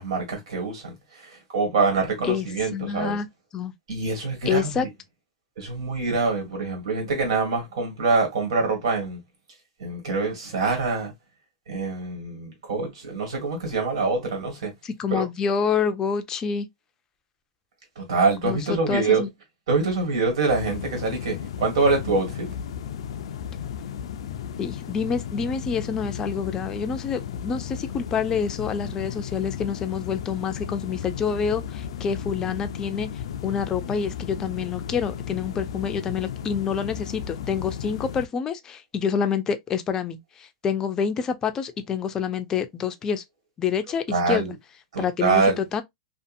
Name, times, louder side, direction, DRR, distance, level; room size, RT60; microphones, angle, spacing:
voice 1, 0.0-3.2 3.9-4.9 5.6-9.2 9.8-11.1 11.7-14.7 15.1-15.3 18.0-19.2 19.7-22.5 44.1-44.5 44.9-45.6, right 4 dB, 90° right, 1.8 m, -25 dB
voice 2, 2.7-3.3 3.5-3.7 4.5-4.9 14.8-16.7 18.4-19.3 24.6-33.1 33.4-43.2 43.6-44.5 45.0-45.8, left 6 dB, 20° left, 0.4 m, -27 dB
sound 1, 20.5-38.3, left 8 dB, 90° left, 0.4 m, -34 dB
2.6 x 2.5 x 2.5 m
supercardioid pair, 150°, 3 cm